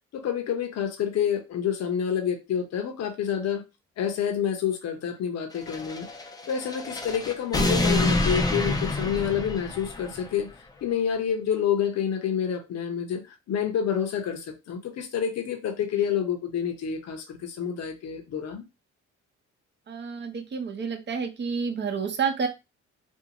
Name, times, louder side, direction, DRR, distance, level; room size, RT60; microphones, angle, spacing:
voice 1, 0.1-3.6 4.0-6.1 6.5-18.6, left 8 dB, 60° left, 0.7 m, -28 dB
sound 1, 5.6-10.3, left 2 dB, 15° left, 0.4 m, -27 dB
voice 2, 19.9-22.5, right 6 dB, 35° right, 0.7 m, -29 dB
2.6 x 2.5 x 2.8 m
cardioid pair, 90°, 30 cm